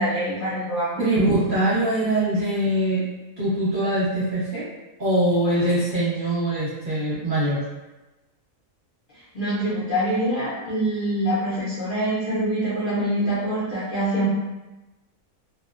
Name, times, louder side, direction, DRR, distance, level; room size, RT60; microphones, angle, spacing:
voice 1, 0.0-1.0 9.1-14.3, right 1 dB, 50° left, -11 dB, 0.6 m, -25 dB
voice 2, 1.0-3.0 3.4-4.7 5.0-7.6, right 1 dB, 40° right, -12 dB, 1.1 m, -22 dB
2.5 x 2.1 x 2.4 m, 1.1 s
omnidirectional pair, 1.5 m